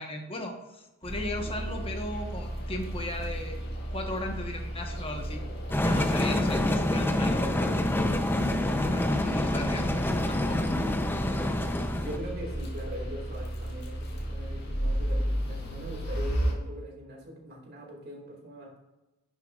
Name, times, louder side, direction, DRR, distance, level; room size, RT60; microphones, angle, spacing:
voice 1, 0.0-3.6 3.9-5.4 5.8-7.7 8.6-10.7, left 1 dB, 25° left, 3 dB, 1.1 m, -36 dB
sound 1, 1.0-16.5, right 1 dB, 50° left, 1.9 m, -34 dB
sound 2, 5.7-12.2, left 1 dB, 10° left, 0.6 m, -27 dB
voice 2, 11.9-18.8, equal, 50° right, -1 dB, 2.3 m, -41 dB
10.0 x 6.9 x 2.4 m, 1.0 s
head